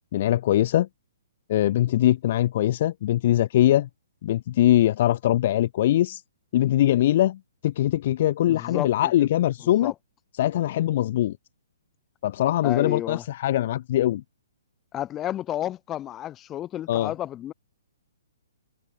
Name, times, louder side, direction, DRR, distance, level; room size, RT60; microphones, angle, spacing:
voice 1, 0.1-0.9 1.5-3.9 4.2-6.2 6.5-7.4 7.6-9.9 10.4-11.3 12.2-14.2 16.9-17.1, left 13 dB, 50° left, 1.3 m, -22 dB
voice 2, 8.5-9.3 9.8-9.9 12.6-13.2 14.9-17.5, left 12 dB, 20° left, 4.8 m, -31 dB
hypercardioid pair, 135°, 0 cm